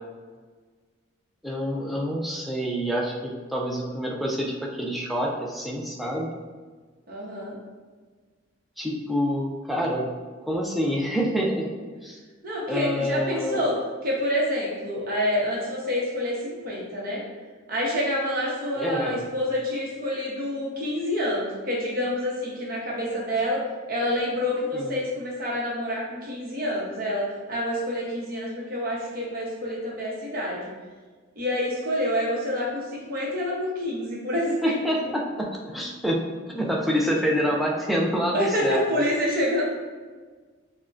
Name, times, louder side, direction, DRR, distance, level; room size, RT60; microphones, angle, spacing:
voice 1, 1.4-6.3 8.8-10.1 10.4-11.7 12.0-12.2 12.7-13.7 18.8-19.3 24.7-25.0 34.6-39.0, equal, ahead, -2 dB, 0.4 m, -27 dB
voice 2, 7.1-7.6 12.4-17.2 17.7-23.6 23.9-30.7 31.4-34.7 38.3-39.6, left 1 dB, 45° right, -4 dB, 0.8 m, -27 dB
6.2 x 2.1 x 2.4 m, 1.4 s
head